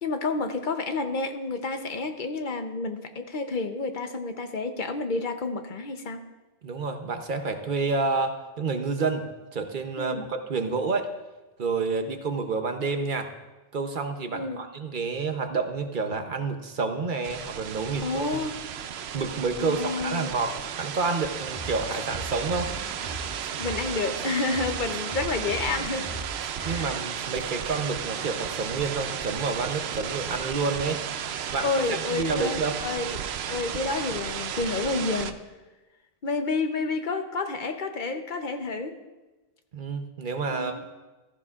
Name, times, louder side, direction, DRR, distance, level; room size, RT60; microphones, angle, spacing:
voice 1, 0.0-6.2 10.0-10.3 14.3-14.6 18.0-18.6 19.6-20.3 23.6-26.1 26.7-26.9 31.6-35.4 36.2-38.9 40.5-40.9, left 3 dB, 55° left, 7 dB, 0.9 m, -30 dB
voice 2, 6.6-9.3 9.5-11.1 11.6-13.3 13.7-18.4 19.1-22.7 26.6-31.0 31.5-32.8 39.7-40.9, right 4 dB, 55° right, 6 dB, 0.9 m, -29 dB
sound 1, 17.2-35.3, right 8 dB, 90° right, 0.9 m, -34 dB
sound 2, 21.5-23.9 24.2-26.9 27.2-27.5, equal, 25° left, 2.0 m, -39 dB
15.0 x 13.5 x 2.4 m, 1.2 s
omnidirectional pair, 1.0 m